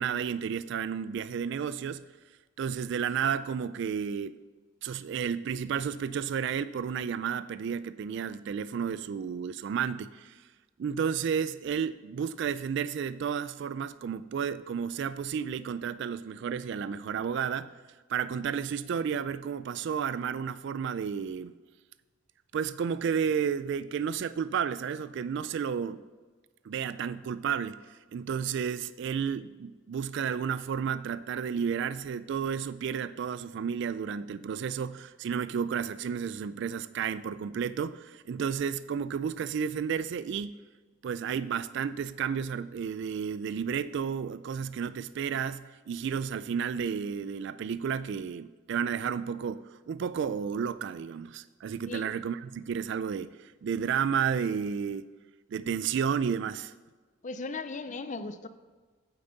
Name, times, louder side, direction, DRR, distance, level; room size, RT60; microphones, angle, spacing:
voice 1, 0.0-2.0 2.6-4.4 4.8-10.4 10.8-17.7 18.1-21.5 22.5-26.0 26.6-40.6 41.0-55.1 55.5-56.7, right 7 dB, 60° right, 0.3 m, -32 dB
voice 2, 57.2-58.5, left 3 dB, 40° left, 0.5 m, -37 dB
9.0 x 7.8 x 4.0 m
head